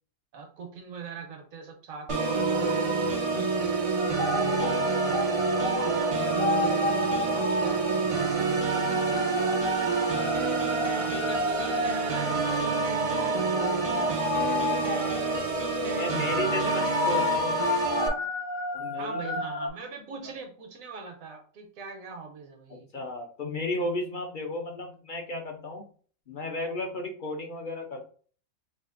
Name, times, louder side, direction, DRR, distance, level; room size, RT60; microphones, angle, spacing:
voice 1, 0.3-3.6 4.3-10.3 10.9-14.6 16.3-17.3 18.9-22.9, right 5 dB, 85° right, 4 dB, 1.3 m, -43 dB
Organ, 2.1-18.1, right 4 dB, 45° right, 0.4 m, -27 dB
sound 1, 4.0-19.7, left 3 dB, 80° left, 1.4 m, -32 dB
voice 2, 15.3-17.6 18.7-19.3 22.9-25.8 26.3-28.0, left 1 dB, 50° left, 3 dB, 0.6 m, -34 dB
4.9 x 2.5 x 2.5 m, 0.43 s
omnidirectional pair, 1.4 m